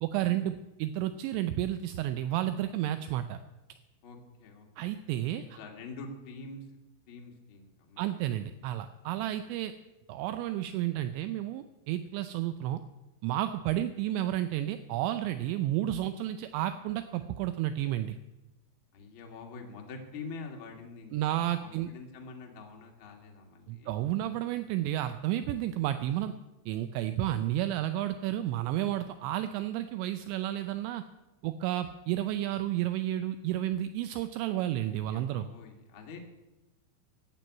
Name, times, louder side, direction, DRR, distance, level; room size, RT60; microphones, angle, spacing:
voice 1, 0.0-0.5 0.8-3.4 4.8-5.6 8.0-9.7 10.1-12.8 13.2-18.2 21.1-21.9 23.7-26.3 26.7-31.0 31.4-35.5, right 13 dB, 85° right, 10 dB, 2.6 m, -31 dB
voice 2, 4.0-4.9 5.3-6.6 7.1-8.1 9.1-9.3 18.9-23.9 34.9-36.2, left 4 dB, 75° left, 1 dB, 1.1 m, -46 dB
14.5 x 7.6 x 9.3 m, 1.0 s
omnidirectional pair, 5.7 m